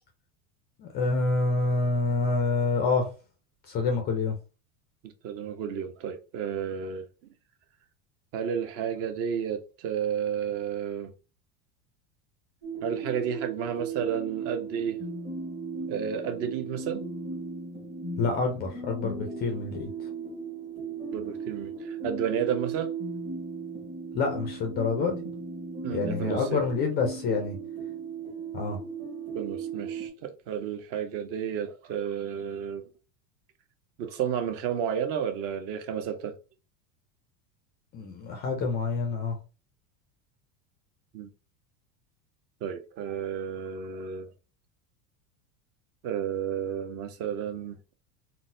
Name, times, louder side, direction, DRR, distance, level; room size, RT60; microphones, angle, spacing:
voice 1, 0.8-3.1 3.7-4.4 18.2-19.9 24.1-25.3 25.9-27.6 28.5-28.8 37.9-39.4, left 3 dB, 25° left, 0.3 m, -27 dB
voice 2, 5.0-7.1 8.3-11.1 12.8-15.0 15.9-17.0 21.1-22.9 25.8-26.6 29.3-32.8 34.0-36.3 41.1-41.3 42.6-44.3 46.0-47.8, right 8 dB, 35° right, 0.5 m, -32 dB
sound 1, 12.6-30.1, right 4 dB, 20° right, 1.1 m, -37 dB
3.8 x 2.0 x 2.6 m
supercardioid pair, 145°, 41 cm